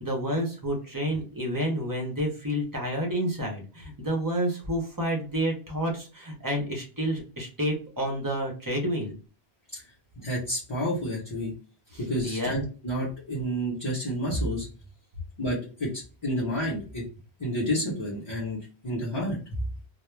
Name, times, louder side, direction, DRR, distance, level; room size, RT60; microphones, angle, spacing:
voice 1, 0.0-9.1 11.9-12.6, equal, 25° right, 0 dB, 0.5 m, -29 dB
voice 2, 10.2-11.5 12.0-14.7 15.4-17.0 17.4-19.4, equal, 30° left, -6 dB, 0.7 m, -30 dB
2.3 x 2.0 x 3.1 m, 0.36 s
omnidirectional pair, 1.1 m